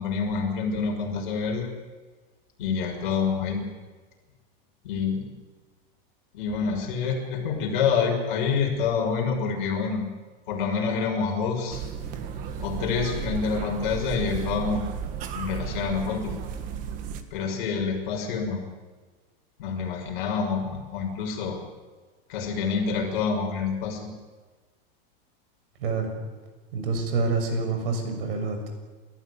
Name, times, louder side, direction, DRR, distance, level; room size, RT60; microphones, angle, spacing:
voice 1, 0.0-1.7 2.6-3.6 4.8-5.3 6.3-10.0 10.5-11.8 12.6-14.8 15.3-16.3 17.3-18.6 19.6-21.6 22.3-24.1, left 5 dB, 55° left, 2 dB, 6.3 m, -27 dB
sound 1, 11.7-17.2, right 7 dB, 25° right, 1.5 m, -34 dB
voice 2, 25.8-26.1 26.7-28.7, right 3 dB, 65° right, 6 dB, 6.7 m, -27 dB
29.5 x 14.5 x 9.9 m, 1.4 s
supercardioid pair, 180°, 30 cm